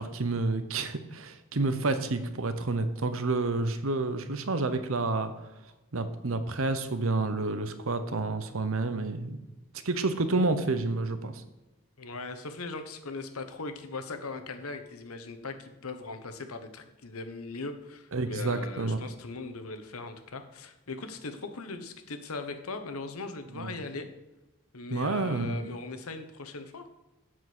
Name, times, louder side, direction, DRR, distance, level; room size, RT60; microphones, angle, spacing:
voice 1, 0.0-5.3 5.9-9.4 9.8-11.4 18.1-19.0 23.5-23.8 24.9-25.5, right 3 dB, 75° right, 10 dB, 0.9 m, -29 dB
voice 2, 12.0-24.1 24.7-26.8, left 3 dB, 90° left, 8 dB, 1.1 m, -39 dB
8.0 x 7.5 x 6.1 m, 1.0 s
head